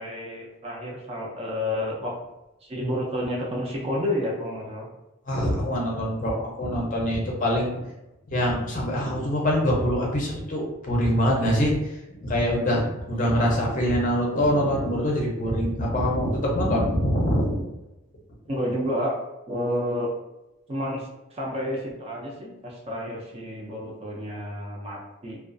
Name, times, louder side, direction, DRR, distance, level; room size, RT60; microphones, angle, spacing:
voice 1, 0.0-2.2 2.6-4.9 18.5-19.2 19.5-20.1 20.7-25.4, left 1 dB, 25° right, -2 dB, 0.4 m, -30 dB
voice 2, 5.3-7.7 8.3-11.7 12.1-17.7, equal, 35° left, -2 dB, 0.5 m, -24 dB
2.3 x 2.3 x 2.4 m, 0.97 s
head